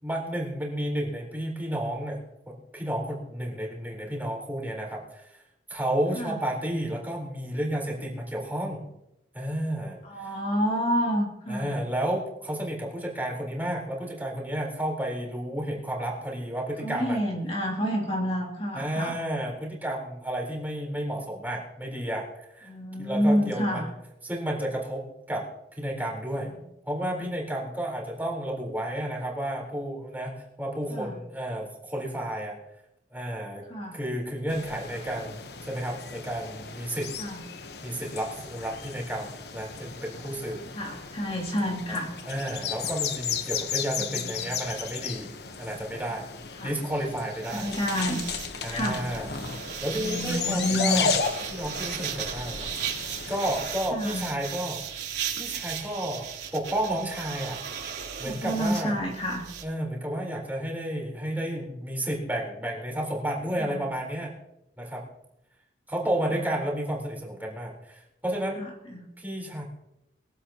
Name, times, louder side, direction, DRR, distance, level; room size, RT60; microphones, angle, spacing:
voice 1, 0.0-2.2 2.5-5.4 5.7-8.8 9.3-10.3 11.5-17.2 18.7-22.3 22.5-22.7 23.0-23.9 24.2-25.5 25.8-26.5 26.8-32.6 33.1-33.6 33.9-37.1 37.8-40.6 41.9-42.0 42.2-45.3 45.6-46.3 46.6-47.7 48.6-49.3 49.8-51.2 51.5-52.7 53.3-54.8 55.3-56.3 56.5-57.6 58.2-59.0 59.6-64.3 64.8-65.0 65.9-68.6 69.2-69.6, right 1 dB, 10° right, -2 dB, 4.1 m, -31 dB
voice 2, 10.0-11.7 16.8-19.2 22.7-23.9 30.9-31.2 33.7-34.0 37.2-37.4 40.7-42.1 44.1-44.5 46.6-46.7 47.5-48.2 48.7-49.0 50.0-51.0 53.9-54.3 58.3-59.4 63.6-63.8 66.4-66.5 68.6-68.7 68.9-69.1, equal, 35° left, -1 dB, 2.7 m, -29 dB
sound 1, 34.5-53.7, left 6 dB, 65° left, 1.1 m, -34 dB
sound 2, 47.4-59.6, right 8 dB, 75° right, 3.3 m, -36 dB
22.5 x 16.0 x 3.0 m, 0.88 s
head